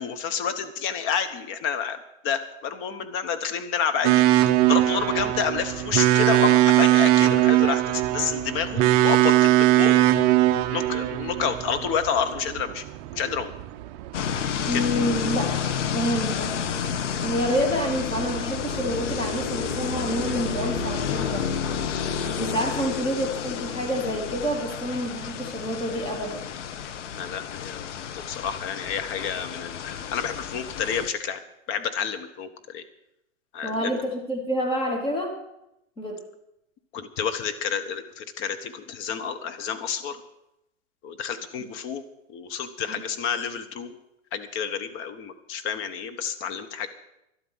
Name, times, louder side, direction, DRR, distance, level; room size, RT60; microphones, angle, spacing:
voice 1, 0.0-2.0 2.2-10.0 10.7-12.8 13.1-13.5 14.7-14.8 27.1-27.8 28.1-31.4 31.7-32.8 33.5-34.0 36.9-40.2 41.0-42.0 42.3-43.9 44.3-46.9, left 7 dB, 30° left, 9 dB, 1.3 m, -29 dB
sound 1, 4.0-22.5, right 15 dB, 35° right, 0.6 m, -22 dB
sound 2, 14.1-31.1, left 8 dB, 70° left, 1.2 m, -30 dB
voice 2, 14.6-15.6 15.9-16.5 17.2-21.5 22.4-26.4 33.6-35.4 36.0-36.2 42.9-43.0, equal, 15° left, 2 dB, 2.7 m, -28 dB
12.0 x 12.0 x 6.3 m, 0.84 s
hypercardioid pair, 135°, 37 cm